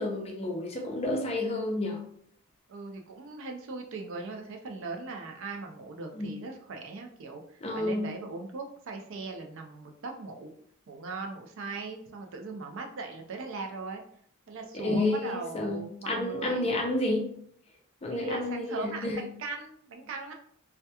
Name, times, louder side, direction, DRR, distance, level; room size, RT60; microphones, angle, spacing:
voice 1, 0.0-2.0 6.1-6.3 7.6-8.1 14.8-17.3 18.0-19.3, left 2 dB, 30° left, 0.4 m, -30 dB
voice 2, 2.7-7.4 7.7-10.5 10.9-14.0 14.5-16.7 18.1-20.3, right 3 dB, 60° right, 0.4 m, -39 dB
2.8 x 2.2 x 2.2 m
head